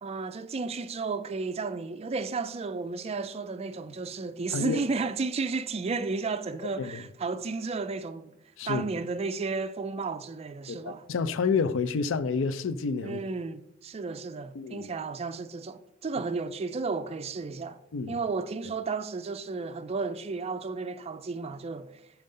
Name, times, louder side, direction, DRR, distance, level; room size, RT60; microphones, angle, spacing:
voice 1, 0.0-8.4 8.7-11.0 13.0-17.8 18.1-22.0, right 4 dB, 30° right, 0.4 m, -33 dB
voice 2, 10.7-13.2 14.5-14.9 17.9-18.2, left 5 dB, 70° left, 0.4 m, -29 dB
6.5 x 4.5 x 5.4 m
head